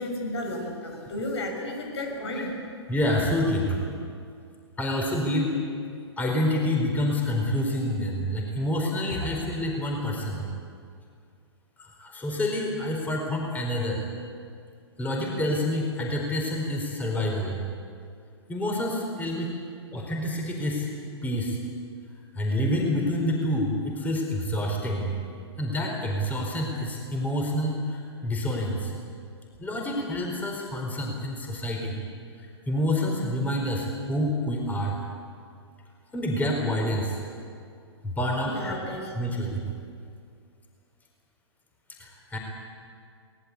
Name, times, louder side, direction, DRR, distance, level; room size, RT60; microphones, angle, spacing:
voice 1, 0.0-2.5 38.4-39.1, left 1 dB, 70° left, 3 dB, 5.8 m, -33 dB
voice 2, 2.1-2.5 2.9-3.8 4.8-5.5 6.2-10.5 11.8-14.0 15.0-17.6 18.5-19.5 19.9-20.9 21.2-21.6 22.3-25.2 25.6-28.9 29.6-32.0 32.4-35.0 36.1-37.2 38.0-38.8 39.1-39.6 42.0-42.4, left 1 dB, 10° left, 0 dB, 4.4 m, -28 dB
23.0 x 19.5 x 8.4 m, 2.3 s
hypercardioid pair, 125°, 14 cm